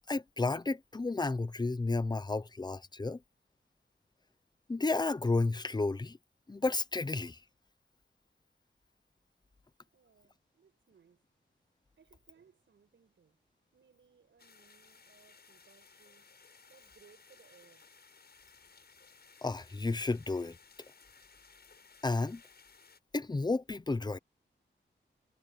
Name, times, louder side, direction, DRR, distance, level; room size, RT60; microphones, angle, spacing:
voice 1, 0.0-3.2 4.7-6.2 6.5-7.4 19.4-20.6 22.0-22.4 23.1-24.2, left 3 dB, 20° left, 0.8 m, -32 dB
voice 2, 9.9-11.3 12.0-13.4 13.7-16.3 16.6-17.9, right 6 dB, 70° right, 5.8 m, -65 dB
sound 1, 14.4-23.0, left 5 dB, 55° left, 8.0 m, -60 dB
wide cardioid pair, 145°, 20 cm